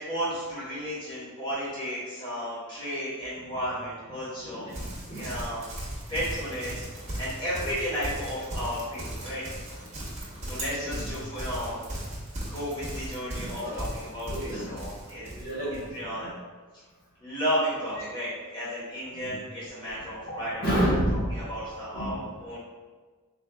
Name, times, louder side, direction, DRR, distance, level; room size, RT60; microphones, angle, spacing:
voice 1, 0.0-4.7 5.1-5.7 6.1-6.8 7.2-9.4 10.4-11.8 12.5-15.3 15.7-16.3 17.2-22.6, equal, 20° left, -9 dB, 1.1 m, -33 dB
voice 2, 4.4-5.3 10.7-11.1 13.3-13.8 14.2-14.8 15.2-15.8 16.2-16.3 18.0-18.1 19.1-19.4 19.8-20.0 20.3-20.4 20.6-21.4 21.9-22.2, equal, 45° left, -8 dB, 1.2 m, -30 dB
Livestock farm animals working animals, 4.7-15.9, right 1 dB, 30° right, 0.9 m, -37 dB
3.9 x 2.5 x 3.4 m, 1.4 s
head